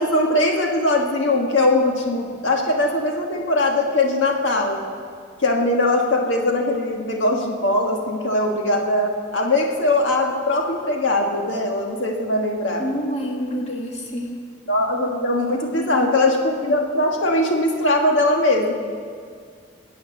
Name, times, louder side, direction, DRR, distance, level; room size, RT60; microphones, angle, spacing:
voice 1, 0.0-4.8 5.4-12.8 14.7-18.7, left 2 dB, 80° left, 1 dB, 1.6 m, -21 dB
voice 2, 12.8-14.3 15.7-16.1, equal, 35° left, -1 dB, 2.1 m, -27 dB
23.0 x 8.5 x 7.0 m, 2.1 s
head